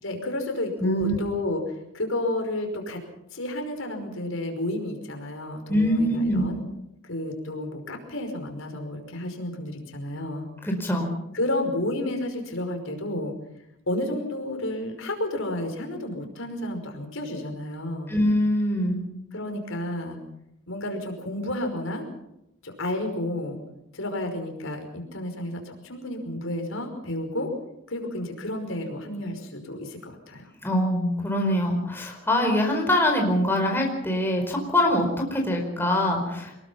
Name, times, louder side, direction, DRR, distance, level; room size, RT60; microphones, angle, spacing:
voice 1, 0.0-3.0 3.3-6.6 7.0-10.5 11.3-13.3 13.9-18.2 19.3-20.2 20.7-22.1 22.6-23.6 23.9-27.5 27.9-30.5, left 1 dB, 70° left, 4 dB, 5.4 m, -31 dB
voice 2, 0.8-1.2 5.7-6.5 10.6-11.1 18.1-19.0 30.6-35.1 35.3-36.5, left 1 dB, 10° left, 1 dB, 4.7 m, -23 dB
25.0 x 21.5 x 5.7 m, 0.83 s
head